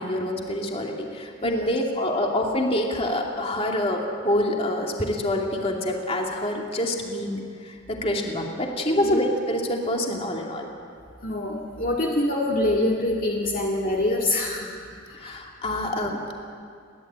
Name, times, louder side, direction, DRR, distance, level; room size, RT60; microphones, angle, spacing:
voice 1, 0.0-10.7 15.2-16.3, left 1 dB, 30° left, 0 dB, 2.6 m, -26 dB
voice 2, 11.2-14.7 15.1-15.4, left 1 dB, 45° left, -2 dB, 2.0 m, -25 dB
30.0 x 12.0 x 8.9 m, 2.3 s
head